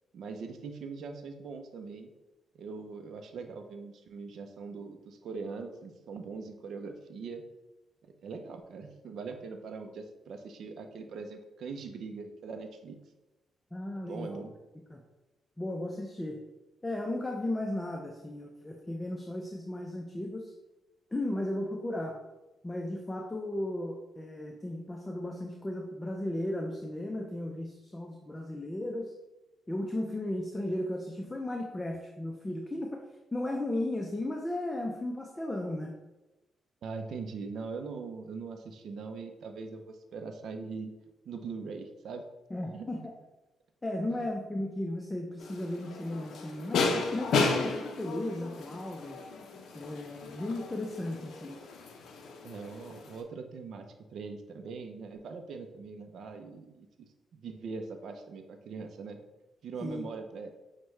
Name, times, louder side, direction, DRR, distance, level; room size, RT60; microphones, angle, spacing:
voice 1, 0.1-2.1 2.5-7.4 8.0-13.0 14.0-14.6 36.8-40.9 41.3-42.2 42.7-43.1 44.1-44.3 52.4-56.9 57.3-59.2 59.6-60.5, right 4 dB, 75° right, 6 dB, 0.5 m, -41 dB
voice 2, 13.7-14.4 14.9-15.0 15.6-16.4 16.8-20.5 21.1-22.2 22.6-29.1 29.7-33.0 33.3-35.9 42.5-43.1 43.8-49.2 49.7-51.6 59.8-60.1, left 1 dB, 20° left, 1 dB, 0.5 m, -35 dB
sound 1, 45.4-53.2, left 4 dB, 75° left, 0.4 m, -34 dB
6.0 x 2.1 x 3.1 m, 1.0 s
supercardioid pair, 60°, 0 cm